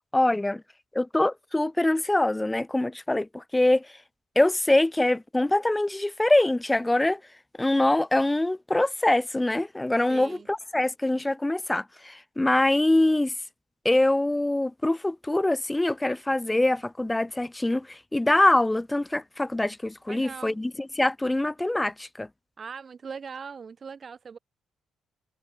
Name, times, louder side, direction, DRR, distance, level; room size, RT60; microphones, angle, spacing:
voice 1, 0.1-0.6 0.9-3.9 4.4-7.2 7.6-13.3 13.8-20.7 21.0-22.3, left 1 dB, 15° left, 0.5 m, -24 dB
voice 2, 10.1-10.5 20.1-20.6 22.6-24.4, right 6 dB, 50° right, 2.8 m, -40 dB
hypercardioid pair, 50°, 0 cm